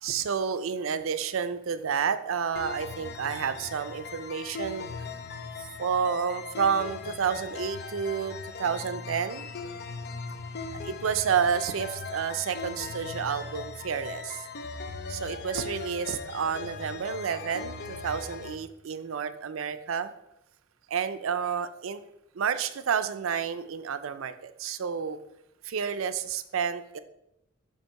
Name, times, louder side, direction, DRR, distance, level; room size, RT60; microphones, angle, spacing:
voice 1, 0.0-5.1 5.8-9.7 10.8-14.5 15.1-20.1 20.9-22.0 22.3-25.2 25.6-27.0, right 7 dB, 85° right, 11 dB, 0.5 m, -30 dB
sound 1, 2.6-18.6, left 4 dB, 55° left, 0.5 m, -39 dB
7.3 x 2.9 x 5.7 m, 0.84 s
head